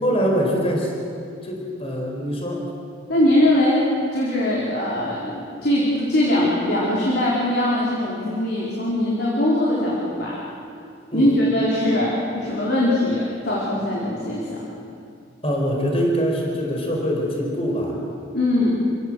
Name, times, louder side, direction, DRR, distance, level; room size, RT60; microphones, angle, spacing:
voice 1, 0.0-0.9 1.4-2.7 11.1-11.3 15.4-18.0, equal, 30° left, 0 dB, 4.6 m, -23 dB
voice 2, 3.1-3.9 4.1-10.4 11.1-14.7 18.3-18.7, left 1 dB, 55° left, -6 dB, 4.5 m, -21 dB
28.0 x 17.0 x 7.9 m, 2.5 s
head